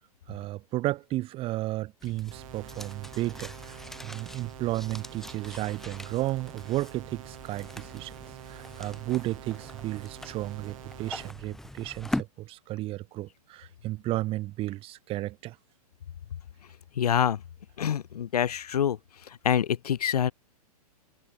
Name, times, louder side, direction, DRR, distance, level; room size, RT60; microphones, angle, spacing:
voice 1, 0.3-8.1 8.4-15.6, right 17 dB, 25° right, 1.0 m, -33 dB
sound 1, 2.0-12.2, left 1 dB, ahead, 0.7 m, -41 dB
sound 2, 2.3-11.3, right 14 dB, 55° right, 2.6 m, -47 dB
voice 2, 17.0-17.4 17.8-19.0 19.4-20.3, left 9 dB, 75° left, 0.9 m, -25 dB
hypercardioid pair, 120°, 20 cm